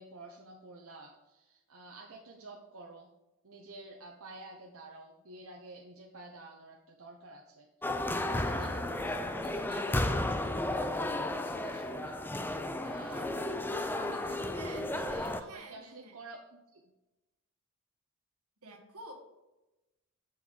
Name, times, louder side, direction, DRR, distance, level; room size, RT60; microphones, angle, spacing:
voice 1, 0.0-3.1 3.4-13.4 14.0-16.8, right 2 dB, 70° right, -1 dB, 0.9 m, -51 dB
sound 1, 7.8-15.4, left 1 dB, 10° left, 0.4 m, -33 dB
voice 2, 14.5-14.9 15.4-16.2 18.6-19.1, right 2 dB, 85° right, 3 dB, 1.7 m, -49 dB
7.2 x 6.4 x 3.9 m, 1.0 s
head